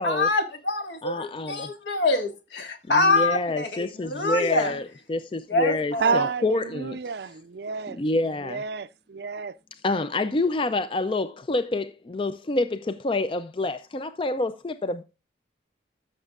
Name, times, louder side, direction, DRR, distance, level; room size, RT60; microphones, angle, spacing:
voice 1, 0.0-4.8 5.5-6.3, left 2 dB, 70° left, 1.7 m, -25 dB
voice 2, 1.0-1.7 2.9-7.0 7.9-8.6 9.8-15.0, left 2 dB, 30° left, 0.4 m, -27 dB
voice 3, 6.0-8.0 8.4-9.5, right 5 dB, 60° right, 0.4 m, -29 dB
14.0 x 6.4 x 2.4 m
head